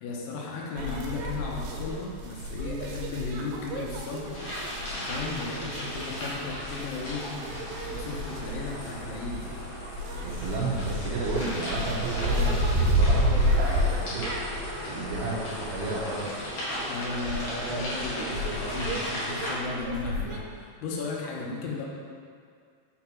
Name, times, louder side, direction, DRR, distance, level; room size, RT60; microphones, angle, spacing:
voice 1, 0.0-4.3 4.9-7.2 7.9-9.6 16.9-21.9, left 3 dB, 75° left, -2 dB, 2.7 m, -35 dB
sound 1, 0.8-20.4, equal, 90° right, 2.8 m, -31 dB
sound 2, 4.3-19.5, left 1 dB, 55° left, 2.2 m, -37 dB
voice 2, 10.2-14.4 14.9-16.4, right 3 dB, 75° right, -8 dB, 2.5 m, -32 dB
6.6 x 4.1 x 4.4 m, 2.2 s
omnidirectional pair, 4.9 m